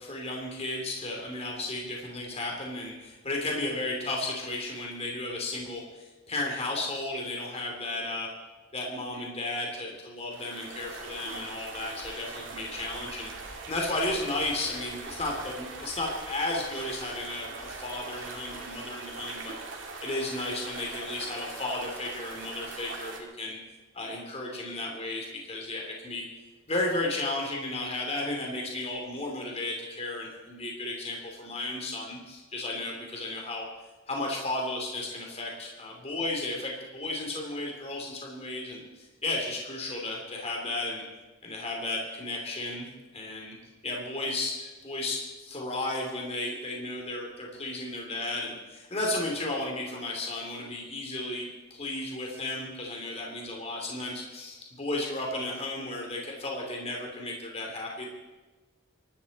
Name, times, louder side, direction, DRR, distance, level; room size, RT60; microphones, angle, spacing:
voice 1, 0.0-8.3 8.7-19.6 20.0-23.6 23.9-26.2 26.7-33.6 34.1-41.0 41.4-42.9 43.1-43.5 43.8-58.1, left 2 dB, 35° left, 0 dB, 3.0 m, -34 dB
sound 1, 10.3-23.2, right 4 dB, 75° right, 2.7 m, -41 dB
24.0 x 12.5 x 4.2 m, 1.2 s
head